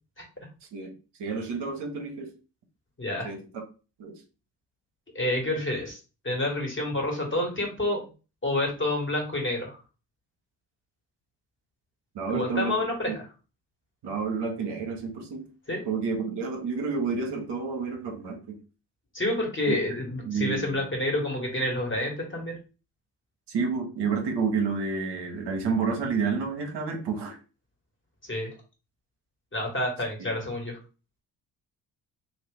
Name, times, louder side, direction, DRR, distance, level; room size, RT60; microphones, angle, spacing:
voice 1, 1.2-2.3 3.2-3.6 4.0-4.2 12.1-12.7 13.1-13.2 14.0-15.5 15.9-18.6 19.7-19.8 20.3-20.9 23.5-27.3 30.2-30.3, right 5 dB, 60° right, 2 dB, 1.1 m, -30 dB
voice 2, 3.0-3.3 5.1-6.0 6.2-8.0 8.4-9.8 12.3-13.2 15.7-15.8 19.1-22.5 28.2-28.5 29.5-30.8, left 1 dB, 25° left, 0 dB, 1.7 m, -28 dB
2.9 x 2.6 x 3.5 m, 0.34 s
hypercardioid pair, 50°, 47 cm